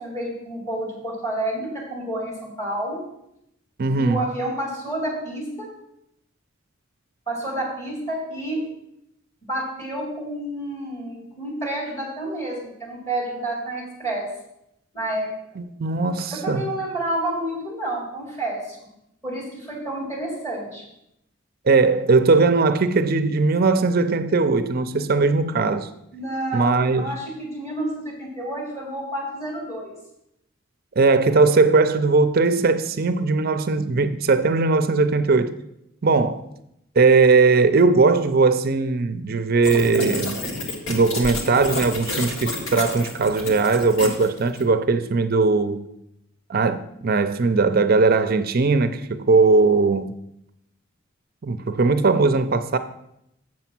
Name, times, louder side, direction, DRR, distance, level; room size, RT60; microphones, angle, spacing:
voice 1, 0.0-3.0 4.0-5.7 7.3-8.6 9.5-14.3 14.9-15.3 16.4-18.8 19.2-20.8 26.1-30.0, right 1 dB, 15° left, 3.5 m, -29 dB
voice 2, 3.8-4.2 15.6-16.6 21.7-25.9 26.5-27.1 31.0-35.5 36.0-36.4 37.0-40.4 40.9-45.8 46.5-50.1 51.4-52.8, right 3 dB, 45° right, 0.5 m, -19 dB
sound 1, 39.6-44.6, left 2 dB, 70° left, 1.8 m, -30 dB
7.6 x 6.9 x 5.9 m
head